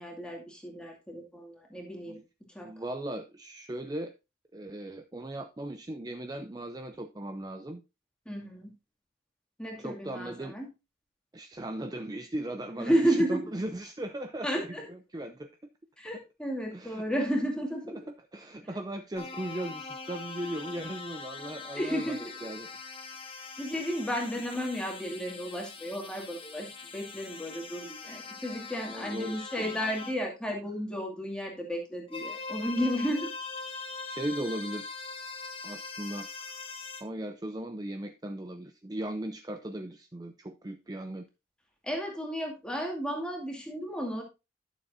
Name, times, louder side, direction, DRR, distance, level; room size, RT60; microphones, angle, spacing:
voice 1, 0.0-2.2 2.5-2.7 8.3-8.7 9.6-10.7 12.8-13.5 14.4-14.8 16.0-18.0 18.6-18.7 21.8-22.6 23.6-26.7 26.9-33.3 41.8-44.2, equal, 5° left, 1 dB, 2.2 m, -32 dB
voice 2, 2.6-4.1 4.5-7.8 9.8-10.5 11.3-15.6 16.1-16.2 16.7-17.1 17.9-23.2 28.8-29.7 34.0-34.9 35.6-36.3 37.0-41.2, right 1 dB, 20° right, 8 dB, 0.5 m, -38 dB
sound 1, 19.2-30.2 32.1-37.0, left 4 dB, 25° left, 1.3 m, -42 dB
12.0 x 7.0 x 2.6 m, 0.26 s
head